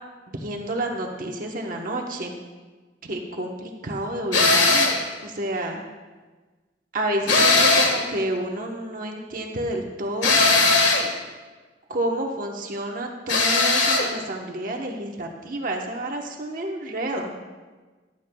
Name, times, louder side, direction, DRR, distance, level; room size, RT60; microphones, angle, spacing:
voice 1, 0.3-2.4 3.1-5.0 5.2-5.8 6.9-10.4 11.9-17.3, right 1 dB, 50° right, 1 dB, 1.0 m, -29 dB
sound 1, 4.3-5.0 7.3-8.1 10.2-11.1 13.3-14.1, left 3 dB, 90° left, 1.6 m, -18 dB
15.5 x 11.5 x 2.3 m, 1.3 s
head